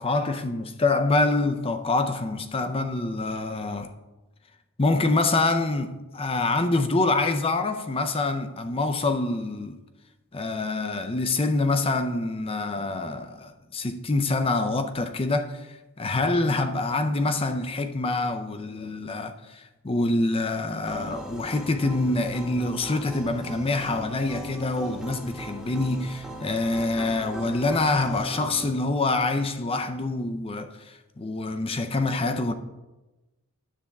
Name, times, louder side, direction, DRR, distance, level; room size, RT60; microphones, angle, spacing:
voice 1, 0.0-3.9 4.8-9.8 10.3-32.5, left 2 dB, 25° left, 0.5 m, -26 dB
sound 1, 20.9-28.7, equal, 5° right, 1.0 m, -39 dB
10.0 x 3.5 x 7.0 m
head